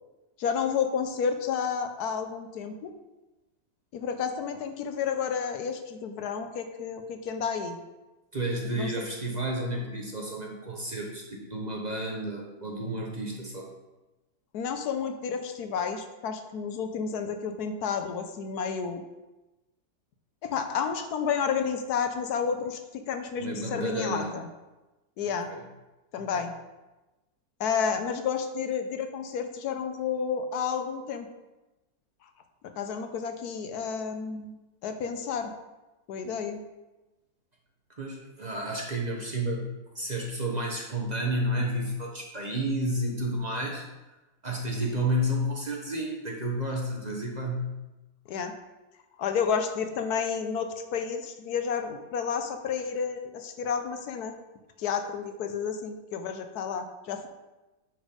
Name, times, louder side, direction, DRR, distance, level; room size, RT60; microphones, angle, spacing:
voice 1, 0.4-2.9 3.9-7.8 8.7-9.1 14.5-19.0 20.4-24.5 25.2-25.5 26.1-26.5 27.6-31.3 32.8-35.5 36.1-36.6 48.3-48.5 49.2-54.3 54.8-57.3, left 6 dB, 80° left, 7 dB, 1.3 m, -31 dB
voice 2, 8.3-13.7 23.4-24.3 25.5-25.6 26.3-26.4 38.0-43.9 44.4-47.7, right 1 dB, 30° right, -1 dB, 0.9 m, -31 dB
9.0 x 4.5 x 4.9 m, 1.1 s
omnidirectional pair, 1.6 m